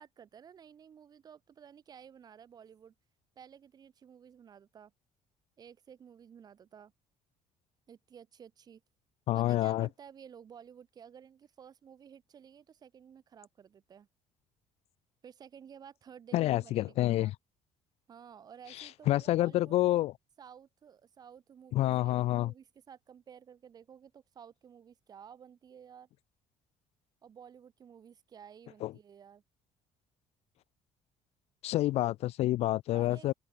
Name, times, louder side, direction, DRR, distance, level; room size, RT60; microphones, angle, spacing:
voice 1, 0.0-2.9 3.4-4.9 5.6-6.9 7.9-8.8 9.3-14.1 15.2-17.3 18.1-20.0 20.4-26.1 27.2-29.4 32.9-33.3, right 8 dB, 30° right, 4.4 m, -53 dB
voice 2, 9.3-9.9 16.3-17.3 18.8-20.1 21.7-22.5 28.8-28.9 31.6-33.3, left 15 dB, 55° left, 0.5 m, -28 dB
cardioid pair, 175°, 13 cm